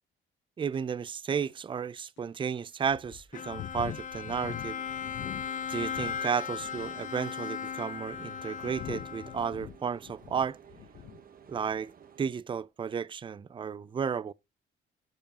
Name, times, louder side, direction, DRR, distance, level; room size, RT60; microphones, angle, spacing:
voice 1, 0.6-4.8 5.7-10.6 11.5-11.9 12.2-14.3, right 7 dB, 25° right, 0.4 m, -33 dB
sound 1, 0.7-0.8 1.4-1.5 2.2-2.3 2.9-6.2 6.5-7.0 7.7-11.2 11.5-11.8, left 11 dB, 70° left, 0.8 m, -44 dB
Bowed string instrument, 3.3-9.7, left 7 dB, 40° left, 0.6 m, -37 dB
sound 2, 4.8-12.2, right 8 dB, 45° right, 0.9 m, -55 dB
11.5 x 5.3 x 2.8 m
cardioid pair, 90°, 20 cm